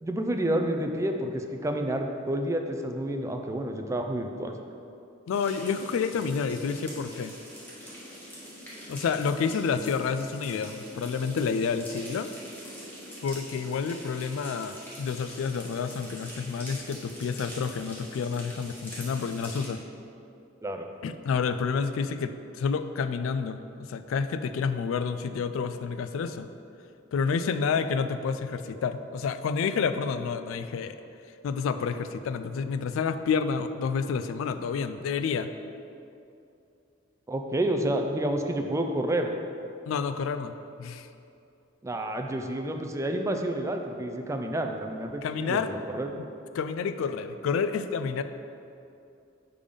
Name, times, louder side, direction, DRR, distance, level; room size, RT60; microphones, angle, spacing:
voice 1, 0.0-4.6 20.6-20.9 37.3-39.3 41.8-46.1, right 1 dB, 15° right, 4 dB, 0.3 m, -29 dB
voice 2, 5.3-7.4 8.9-12.3 13.2-19.8 21.0-26.5 27.1-31.0 31.4-35.5 39.9-40.5 40.8-41.1 45.2-45.7 46.5-48.2, left 5 dB, 80° left, 10 dB, 0.3 m, -29 dB
sound 1, 5.3-19.7, equal, 10° left, 1.5 m, -44 dB
6.7 x 3.5 x 5.1 m, 2.7 s
head